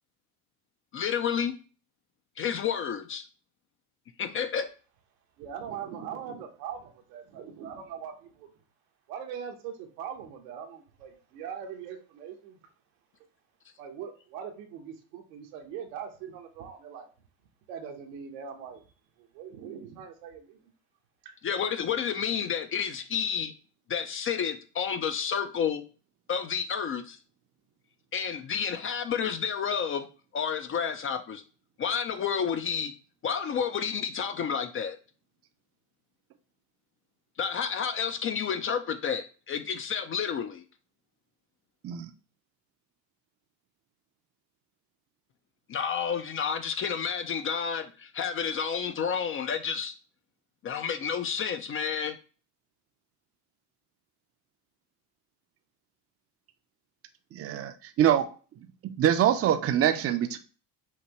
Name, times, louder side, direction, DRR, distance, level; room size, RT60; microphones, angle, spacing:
voice 1, 0.9-1.5 2.4-3.2 4.2-4.6 21.4-23.5 23.9-25.8 26.3-27.2 28.1-30.1 30.3-31.4 31.8-32.9 33.2-35.0 37.4-40.6 45.7-49.9 50.6-52.2, left 7 dB, 30° left, 0.4 m, -30 dB
voice 2, 5.4-8.5 9.1-12.6 13.8-17.1 17.7-18.9 19.2-20.7 21.2-21.3, right 8 dB, 85° right, 1.2 m, -41 dB
voice 3, 57.3-58.3 58.6-60.4, right 10 dB, 30° right, 0.5 m, -25 dB
5.8 x 2.6 x 3.0 m
supercardioid pair, 100°, 46 cm